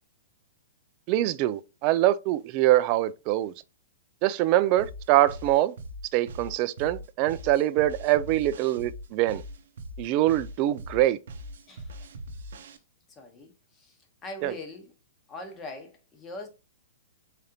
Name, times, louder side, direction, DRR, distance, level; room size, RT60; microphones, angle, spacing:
voice 1, 1.1-3.5 4.2-5.7 6.1-9.4 10.0-11.2 14.4-14.5, right 14 dB, 30° right, 0.3 m, -24 dB
sound 1, 4.8-12.8, equal, 70° right, 0.6 m, -41 dB
voice 2, 11.7-12.1 12.6-12.8 13.2-14.0 14.2-14.9 15.3-16.5, left 1 dB, 15° left, 1.0 m, -42 dB
3.8 x 3.3 x 2.8 m
hypercardioid pair, 160°, 0 cm